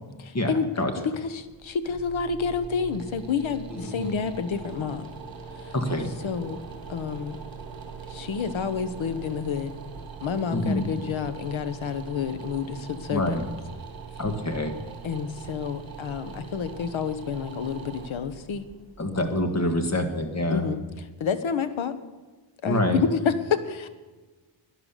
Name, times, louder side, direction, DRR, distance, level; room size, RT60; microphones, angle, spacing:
voice 1, 0.2-0.8 1.2-5.1 5.6-5.7 6.2-6.6 6.9-7.4 8.1-9.7 10.2-13.4 15.0-18.6 20.5-21.9 22.6-23.9, left 6 dB, 70° left, 12 dB, 1.2 m, -29 dB
sound 1, 1.5-20.4, right 5 dB, 45° right, 2.3 m, -42 dB
voice 2, 3.8-4.2 5.7-6.1 10.5-10.9 13.1-13.4 14.2-14.7 19.0-20.7 22.6-23.0, left 1 dB, 35° left, 6 dB, 1.7 m, -26 dB
11.5 x 10.5 x 6.7 m, 1.3 s
wide cardioid pair, 135°, 48 cm